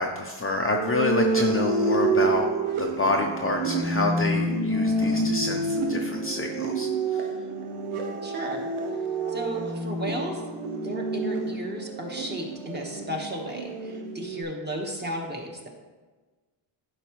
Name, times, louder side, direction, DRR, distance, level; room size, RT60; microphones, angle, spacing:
voice 1, 0.0-2.5 2.8-7.3, left 2 dB, 25° left, 1 dB, 0.6 m, -28 dB
sound 1, 0.7-14.4, right 2 dB, 80° right, 1.0 m, -28 dB
voice 2, 8.2-8.7 9.3-10.4 10.8-15.7, equal, 20° right, 0 dB, 1.4 m, -34 dB
11.0 x 4.9 x 3.2 m, 1.3 s
cardioid pair, 100°, 50 cm